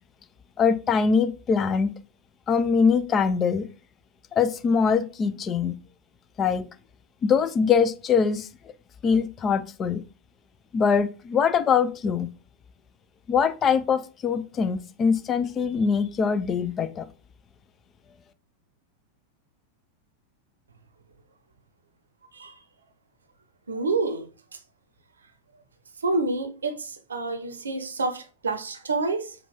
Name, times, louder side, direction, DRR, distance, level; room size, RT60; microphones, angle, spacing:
voice 1, 0.6-1.9 2.5-3.7 4.4-5.8 6.4-6.6 7.2-8.5 9.0-10.0 10.7-12.3 13.3-17.0, left 6 dB, 25° left, 0.4 m, -23 dB
voice 2, 23.7-24.3 26.0-29.3, right 3 dB, 70° right, 0.7 m, -28 dB
4.8 x 2.3 x 3.4 m
figure-of-eight pair, 90°, 0 cm